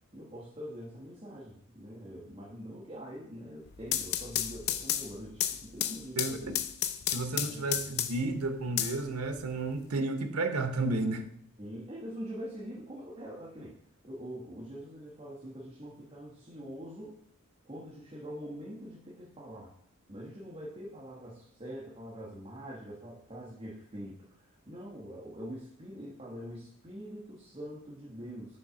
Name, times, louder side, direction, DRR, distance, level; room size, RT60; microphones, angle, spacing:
voice 1, 0.1-6.6 7.3-7.9 11.6-13.7 14.0-17.2 17.6-19.7 20.1-28.6, equal, 25° right, -6 dB, 1.1 m, -44 dB
sound 1, 3.7-8.3 8.8-9.7, left 11 dB, 45° left, 0.4 m, -32 dB
voice 2, 7.1-11.3, right 2 dB, 80° right, 8 dB, 0.8 m, -32 dB
5.4 x 4.0 x 5.8 m, 0.68 s
head